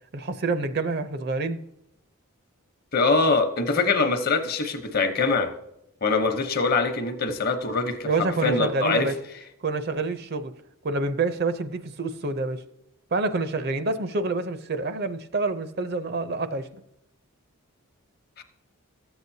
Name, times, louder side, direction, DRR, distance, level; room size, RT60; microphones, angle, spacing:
voice 1, 0.1-1.6 8.0-9.1 9.6-10.5 10.8-12.6 13.1-16.7, right 3 dB, 45° right, 10 dB, 0.5 m, -27 dB
voice 2, 2.9-5.5 6.0-9.1 18.4-18.5, left 4 dB, 45° left, 7 dB, 0.9 m, -23 dB
13.0 x 8.0 x 2.7 m, 0.83 s
head